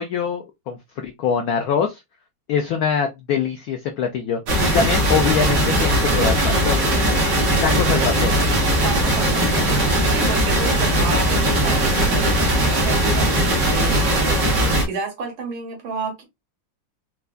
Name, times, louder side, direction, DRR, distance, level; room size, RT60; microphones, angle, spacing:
voice 1, 0.0-2.0 2.5-6.8 7.6-8.3, left 7 dB, 85° left, 0.8 m, -23 dB
sound 1, 4.5-14.8, right 1 dB, 60° right, 1.7 m, -19 dB
voice 2, 8.8-16.2, right 4 dB, 75° right, 2.0 m, -31 dB
4.6 x 2.2 x 2.4 m
omnidirectional pair, 2.2 m